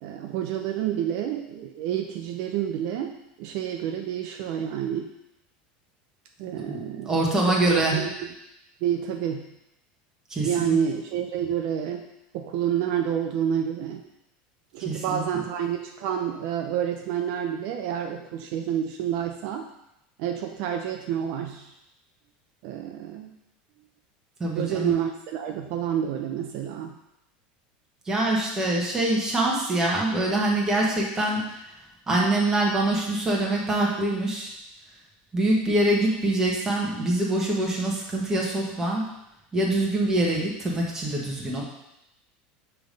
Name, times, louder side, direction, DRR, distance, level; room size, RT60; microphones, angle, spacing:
voice 1, 0.0-5.1 6.4-8.3 8.8-9.5 10.4-12.0 12.3-14.0 14.7-19.7 20.2-21.7 22.6-23.3 24.6-26.9, right 9 dB, 60° right, 4 dB, 0.5 m, -29 dB
voice 2, 6.6-8.0 10.3-10.7 14.8-15.2 24.4-24.9 28.1-31.4 32.1-34.5 35.3-39.0 39.5-41.6, right 1 dB, 10° right, -3 dB, 1.3 m, -24 dB
5.9 x 3.4 x 5.2 m, 0.85 s
supercardioid pair, 150°, 4 cm